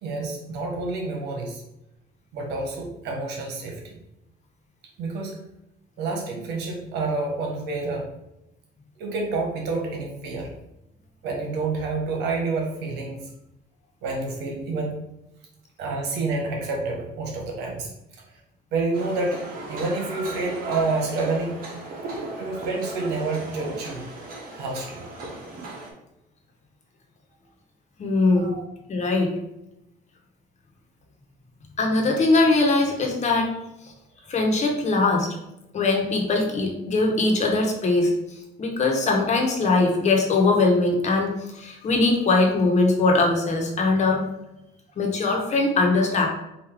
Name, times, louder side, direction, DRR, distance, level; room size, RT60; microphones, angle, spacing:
voice 1, 0.0-1.6 2.3-4.0 5.0-5.4 6.0-8.1 9.0-10.5 11.2-13.3 14.0-15.0 15.8-17.9 18.7-19.4 19.7-21.6 22.4-24.1 24.6-25.0 28.3-28.6, right 3 dB, 85° right, 1 dB, 1.2 m, -28 dB
sound 1, 18.9-25.9, right 2 dB, 60° right, 1.2 m, -36 dB
voice 2, 28.0-28.5 28.9-29.3 31.8-33.5 33.8-33.9 34.3-35.4 35.7-38.1 38.6-44.2 45.0-46.3, left 3 dB, 45° left, 1 dB, 1.2 m, -21 dB
4.9 x 2.7 x 3.7 m, 0.87 s
cardioid pair, 110°, 17 cm